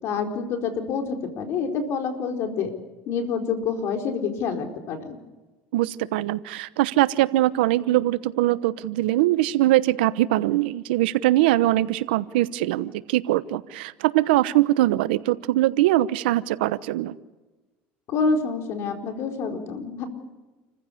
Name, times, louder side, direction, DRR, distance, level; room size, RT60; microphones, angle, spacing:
voice 1, 0.0-2.7 3.1-5.2 18.1-20.1, left 5 dB, 55° left, 4 dB, 4.3 m, -27 dB
voice 2, 5.7-17.1, right 16 dB, 85° right, 16 dB, 1.0 m, -22 dB
28.5 x 15.0 x 8.4 m, 1.2 s
supercardioid pair, 100°, 5 cm